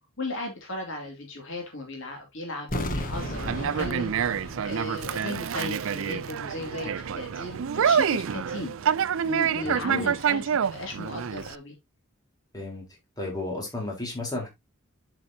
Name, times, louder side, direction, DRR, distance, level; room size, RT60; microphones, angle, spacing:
voice 1, 0.2-8.8 9.2-10.4 10.7-11.8, left 2 dB, 60° left, 2.7 m, -36 dB
sound 1, 2.7-5.6 5.8-5.9, left 1 dB, 40° left, 1.4 m, -34 dB
Conversation, 3.2-11.6, right 7 dB, 70° right, 0.4 m, -27 dB
voice 2, 9.6-10.1 12.5-12.8 13.2-14.5, left 2 dB, 15° left, 4.2 m, -33 dB
7.7 x 7.5 x 2.8 m
head